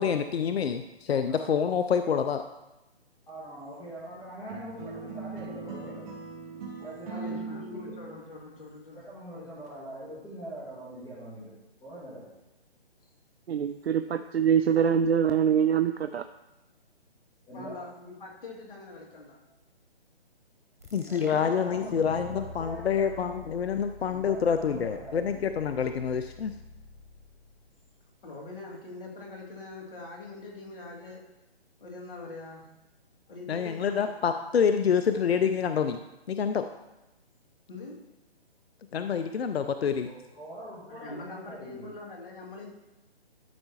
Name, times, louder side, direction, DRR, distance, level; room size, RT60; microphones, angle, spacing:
voice 1, 0.0-0.8 1.1-2.4 20.9-26.5 33.5-36.0 36.3-36.7 38.9-40.1, left 7 dB, 75° left, 9 dB, 0.5 m, -27 dB
voice 2, 3.3-6.1 6.8-8.0 8.9-11.5 11.8-12.3 17.5-17.9 21.1-23.5 24.1-25.5 40.0-41.9, right 1 dB, 10° left, -10 dB, 1.9 m, -43 dB
sound 1, 4.5-8.6, right 4 dB, 35° right, 2.5 m, -40 dB
voice 3, 7.1-9.0 17.5-19.4 28.2-31.3 31.8-32.7 33.3-34.4 35.1-35.4 37.7-38.0 40.9-42.7, left 3 dB, 60° left, -2 dB, 2.3 m, -43 dB
voice 4, 13.5-16.3, right 8 dB, 75° right, 10 dB, 0.5 m, -24 dB
sound 2, 20.8-28.1, left 1 dB, 15° right, 0.3 m, -46 dB
12.0 x 5.5 x 2.9 m, 0.99 s
figure-of-eight pair, 145°, 31 cm